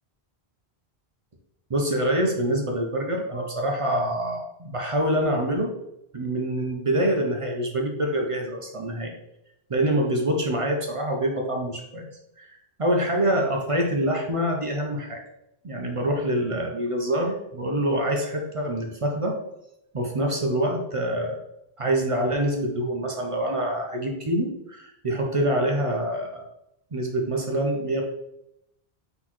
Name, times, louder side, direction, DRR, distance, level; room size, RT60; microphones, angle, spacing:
voice 1, 1.7-5.7 6.1-9.1 9.7-12.1 12.4-12.5 12.8-15.2 15.6-19.4 19.9-21.4 21.8-26.5 26.9-28.0, right 1 dB, 40° right, 1 dB, 0.5 m, -25 dB
3.9 x 3.9 x 3.0 m, 0.84 s
omnidirectional pair, 1.1 m